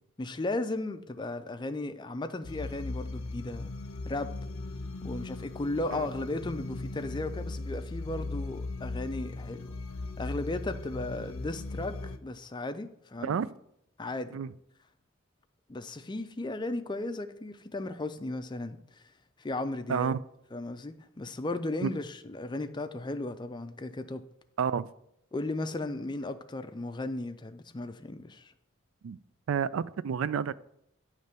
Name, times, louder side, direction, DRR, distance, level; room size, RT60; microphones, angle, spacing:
voice 1, 0.2-3.8 4.0-4.3 5.0-9.8 10.2-13.4 14.0-14.4 15.7-19.0 19.4-20.1 20.5-24.2 25.3-28.5, left 2 dB, 20° left, 0.4 m, -35 dB
sound 1, 2.4-12.2, left 2 dB, 80° left, 0.6 m, -38 dB
voice 2, 19.9-20.2 21.8-21.9 24.6-24.9 29.0-29.2 29.5-30.5, right 7 dB, 70° right, 0.3 m, -29 dB
9.3 x 3.2 x 6.7 m
head